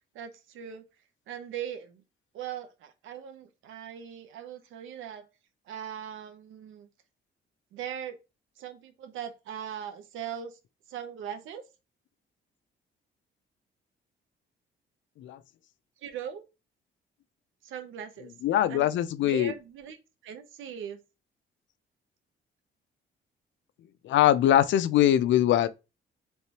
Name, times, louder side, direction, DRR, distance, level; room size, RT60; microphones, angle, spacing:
voice 1, 0.1-0.8 1.3-2.0 2.3-5.3 5.7-6.9 7.7-8.2 8.6-10.6 10.9-11.6 16.0-16.4 17.6-18.3 18.7-18.9 19.2-20.0 20.2-21.0, right 9 dB, 80° right, 0.7 m, -39 dB
voice 2, 18.4-19.5 24.0-25.7, left 12 dB, 70° left, 0.4 m, -22 dB
3.3 x 3.2 x 2.8 m
cardioid pair, 90°, 20 cm